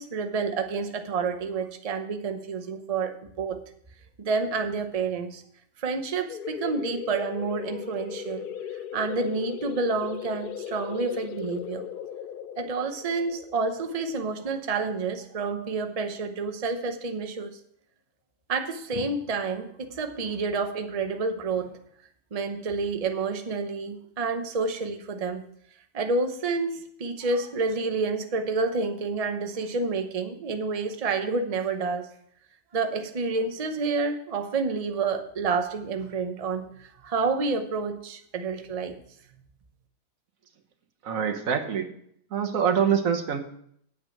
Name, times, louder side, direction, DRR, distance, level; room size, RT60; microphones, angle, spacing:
voice 1, 0.0-3.6 4.2-5.4 5.8-11.9 12.6-17.6 18.5-21.7 22.3-25.4 25.9-32.1 32.7-39.0, right 4 dB, 35° right, 6 dB, 0.8 m, -29 dB
sound 1, 6.3-15.6, left 9 dB, 65° left, 0.5 m, -38 dB
voice 2, 41.0-41.9 42.3-43.4, right 7 dB, 85° right, 6 dB, 1.5 m, -25 dB
9.0 x 7.7 x 5.9 m, 0.68 s
omnidirectional pair, 1.4 m